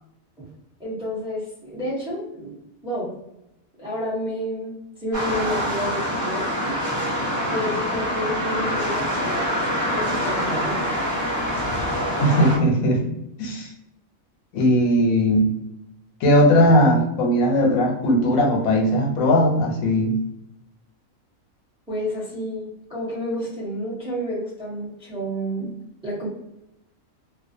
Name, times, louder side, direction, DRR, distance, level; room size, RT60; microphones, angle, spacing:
voice 1, 0.8-2.6 2.8-3.2 3.8-6.9 7.5-9.6 9.9-10.8 21.9-25.7 26.0-26.3, equal, 5° right, -7 dB, 0.7 m, -30 dB
sound 1, 5.1-12.6, equal, 45° right, 1.0 m, -25 dB
voice 2, 12.2-13.0 13.4-13.7 14.5-15.5 16.2-20.2, equal, 85° left, 1 dB, 1.0 m, -18 dB
2.4 x 2.1 x 2.6 m, 0.85 s
omnidirectional pair, 1.4 m